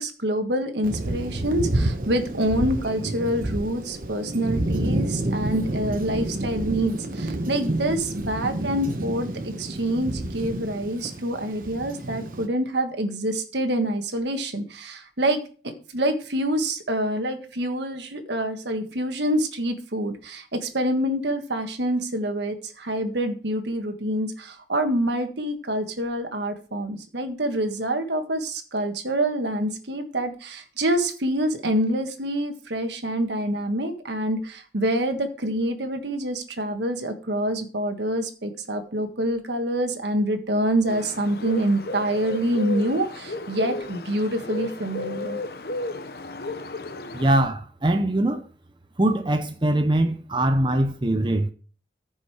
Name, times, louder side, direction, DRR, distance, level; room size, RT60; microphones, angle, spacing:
voice 1, 0.0-45.4, right 1 dB, 80° right, 1.6 m, -26 dB
Thunder, 0.8-12.5, right 1 dB, 50° right, 1.1 m, -29 dB
Bird, 40.9-47.4, left 2 dB, 55° left, 0.9 m, -34 dB
voice 2, 47.1-48.4 49.0-51.5, right 1 dB, 25° right, 0.7 m, -22 dB
14.5 x 5.5 x 4.9 m
head